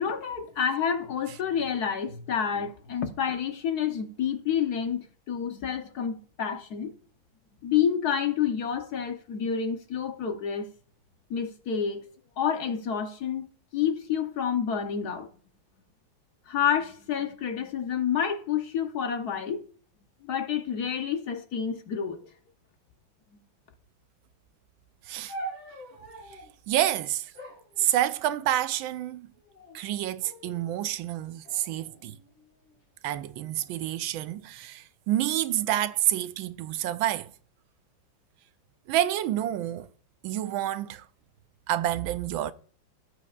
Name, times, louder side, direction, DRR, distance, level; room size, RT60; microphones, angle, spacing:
voice 1, 0.0-6.9 7.6-10.7 11.3-12.0 12.4-13.5 13.7-15.3 16.5-19.6 20.2-22.2, left 8 dB, 60° left, 1.3 m, -29 dB
sound 1, 25.3-26.5 27.3-28.6 29.3-29.8 30.2-30.8 31.4-32.7 33.5-34.0, right 2 dB, 85° left, 6.1 m, -44 dB
voice 2, 26.7-27.3 27.8-29.3 29.7-32.2 33.0-37.3 38.9-39.9 40.2-41.1 41.7-42.5, right 13 dB, 80° right, 1.4 m, -28 dB
17.0 x 7.5 x 2.4 m
omnidirectional pair, 2.2 m